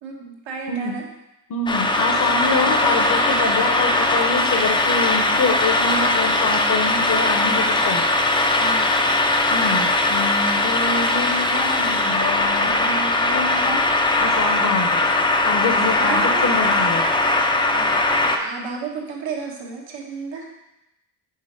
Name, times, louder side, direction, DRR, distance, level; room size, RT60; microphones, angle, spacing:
voice 1, 0.0-1.0 2.6-3.1 5.0-5.4 8.5-9.1 12.6-13.0 15.6-16.5 17.7-20.6, right 4 dB, 85° right, -1 dB, 1.4 m, -33 dB
voice 2, 1.5-8.0 9.5-13.8 14.2-15.1 15.4-17.1, left 3 dB, 50° left, 2 dB, 0.7 m, -26 dB
sound 1, 1.7-18.4, left 2 dB, 10° left, 0.3 m, -20 dB
5.6 x 3.8 x 4.9 m, 0.90 s
cardioid pair, 145°, 44 cm